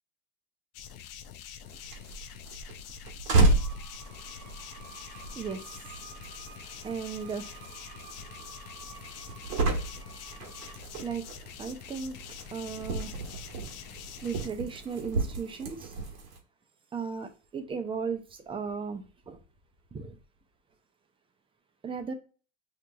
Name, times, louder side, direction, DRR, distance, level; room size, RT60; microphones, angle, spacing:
sound 1, 0.7-14.5, left 9 dB, 75° left, 0.6 m, -46 dB
sound 2, 1.7-16.4, right 2 dB, 90° right, 1.2 m, -33 dB
sound 3, 3.5-10.8, right 7 dB, 45° right, 0.9 m, -52 dB
voice 1, 3.9-11.2 11.6-13.3 13.9-15.9 16.9-19.4 19.9-20.2 21.8-22.1, right 5 dB, 15° right, 0.4 m, -38 dB
6.0 x 2.8 x 2.2 m
supercardioid pair, 125°, 39 cm